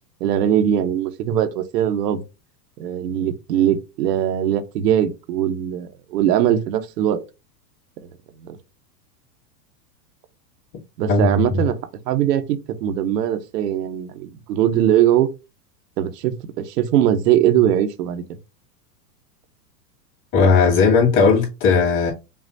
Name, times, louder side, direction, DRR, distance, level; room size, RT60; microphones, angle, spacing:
voice 1, 0.2-2.2 2.8-7.2 8.4-8.6 11.0-11.8 12.1-15.3 16.0-18.2, right 10 dB, 75° right, 0.9 m, -20 dB
voice 2, 11.1-11.6 20.3-22.1, left 4 dB, 40° left, 2.5 m, -17 dB
5.6 x 2.4 x 2.6 m
supercardioid pair, 135°, 48 cm